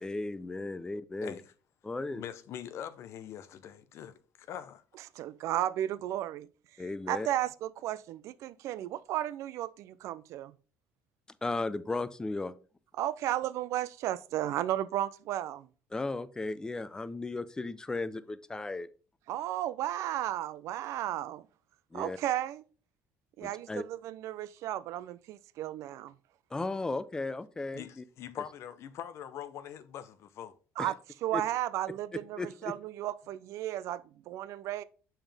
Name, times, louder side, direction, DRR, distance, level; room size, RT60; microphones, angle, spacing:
voice 1, 0.0-1.4 1.8-2.2 6.8-7.3 11.4-12.5 15.9-18.9 21.9-22.2 23.4-23.8 26.5-28.0 30.8-30.9 31.3-31.4 32.4-32.7, left 3 dB, 15° left, 0.5 m, -35 dB
voice 2, 1.2-1.5 2.1-4.8 27.7-30.5, left 10 dB, 60° left, 0.7 m, -43 dB
voice 3, 5.1-6.5 7.1-10.5 13.0-15.7 19.3-21.5 21.9-22.6 23.4-26.1 30.8-34.8, right 13 dB, 70° right, 0.4 m, -34 dB
7.0 x 5.6 x 3.4 m
cardioid pair, 125°, 5 cm